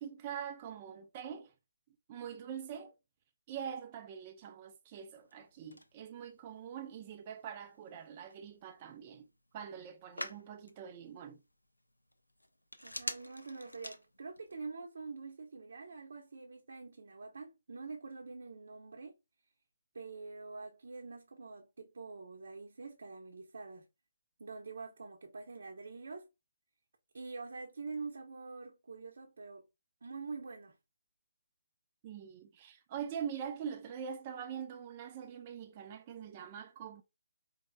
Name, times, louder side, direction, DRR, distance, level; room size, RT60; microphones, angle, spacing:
voice 1, 0.0-1.5 2.1-2.9 3.5-9.3 9.5-11.4 32.0-37.0, right 8 dB, 30° right, 0.5 m, -44 dB
Telephone, 5.0-14.6, left 1 dB, 85° left, 0.7 m, -49 dB
voice 2, 12.8-19.1 19.9-23.9 24.4-26.3 27.1-29.6 30.0-30.8, right 4 dB, 60° right, 0.8 m, -46 dB
5.1 x 2.8 x 2.2 m
figure-of-eight pair, 140°, 0 cm